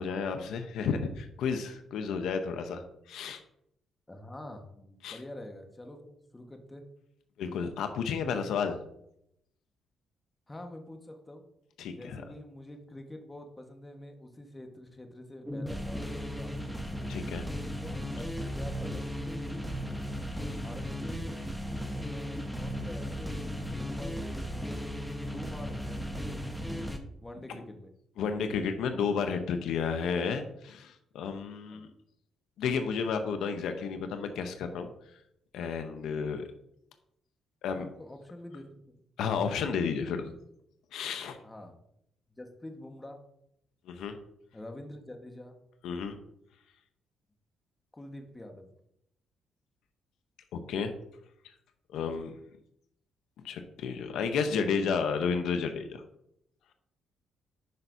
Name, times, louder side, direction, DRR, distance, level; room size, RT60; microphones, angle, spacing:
voice 1, 0.0-3.4 5.0-5.2 7.4-8.8 11.8-12.2 17.1-17.5 28.2-31.9 32.6-34.9 35.5-36.5 37.6-37.9 39.2-40.3 40.9-41.4 43.9-44.2 45.8-46.2 50.5-50.9 51.9-52.4 53.4-56.0, left 6 dB, 80° left, 7 dB, 0.8 m, -32 dB
voice 2, 4.1-6.8 10.5-11.4 11.9-16.8 17.8-19.8 20.3-21.4 21.9-24.9 25.2-26.5 27.2-27.9 31.7-31.9 37.6-39.0 41.4-41.8 42.4-43.2 44.5-45.5 47.9-48.7, left 1 dB, 15° left, 4 dB, 1.3 m, -46 dB
sound 1, 15.5-27.0, equal, ahead, 1.1 m, -36 dB
10.5 x 5.6 x 2.7 m, 0.76 s
cardioid pair, 90°, 0 cm